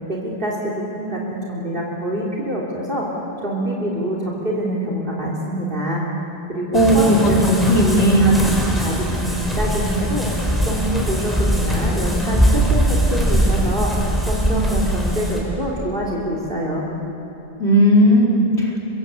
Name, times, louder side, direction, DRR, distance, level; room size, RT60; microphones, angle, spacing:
voice 1, 0.1-3.1 3.4-6.0 6.5-7.2 8.2-8.5 8.8-9.3 9.6-16.9, right 1 dB, 50° right, -3 dB, 3.6 m, -25 dB
voice 2, 6.7-8.3 17.6-18.7, equal, 75° left, -2 dB, 5.0 m, -15 dB
sound 1, 6.7-15.4, equal, ahead, 5.6 m, -21 dB
29.5 x 23.5 x 8.4 m, 2.9 s
omnidirectional pair, 1.1 m